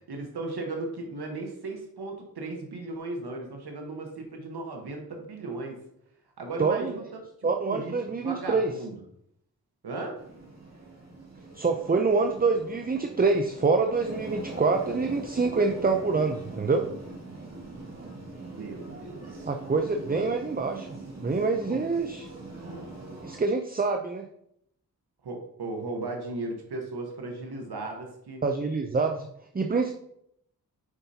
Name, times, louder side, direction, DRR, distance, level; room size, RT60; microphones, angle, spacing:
voice 1, 0.0-5.8 6.4-7.2 7.7-8.9 9.8-10.2 18.5-19.5 20.0-20.2 21.7-21.9 22.5-22.9 25.2-28.4, right 2 dB, 85° right, 2 dB, 1.2 m, -36 dB
voice 2, 6.6-7.0 7.4-8.7 11.5-16.9 19.4-20.9 21.1-22.3 23.2-24.3 28.4-29.3 29.5-29.9, right 4 dB, 25° right, 5 dB, 0.5 m, -26 dB
sound 1, 10.2-23.4, right 2 dB, 45° right, 2.2 m, -42 dB
8.0 x 5.3 x 2.8 m, 0.74 s
wide cardioid pair, 60°, 38 cm